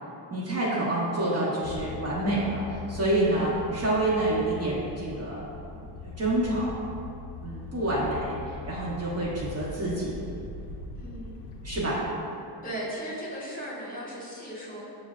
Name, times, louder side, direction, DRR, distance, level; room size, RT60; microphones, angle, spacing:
voice 1, 0.3-5.4 5.7-6.8 7.4-10.3 11.6-12.1, right 1 dB, 35° right, -8 dB, 0.9 m, -28 dB
sound 1, 1.6-11.9, left 3 dB, 70° left, 0.5 m, -41 dB
voice 2, 3.2-3.5 10.9-11.4 12.6-14.8, equal, 20° left, -6 dB, 1.2 m, -37 dB
6.1 x 2.1 x 2.4 m, 2.6 s
cardioid pair, 80°, 44 cm